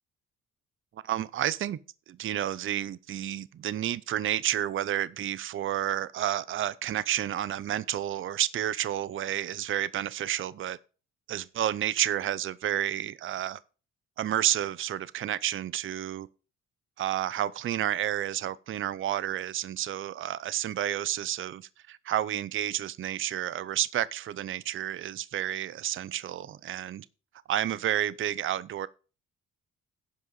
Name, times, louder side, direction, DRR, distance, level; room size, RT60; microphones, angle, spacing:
voice 1, 0.9-1.8 2.1-10.8 11.3-13.6 14.2-16.3 17.0-27.1 27.5-28.9, right 11 dB, 45° right, 0.5 m, -30 dB
16.0 x 5.5 x 4.0 m
cardioid pair, 90°, 30 cm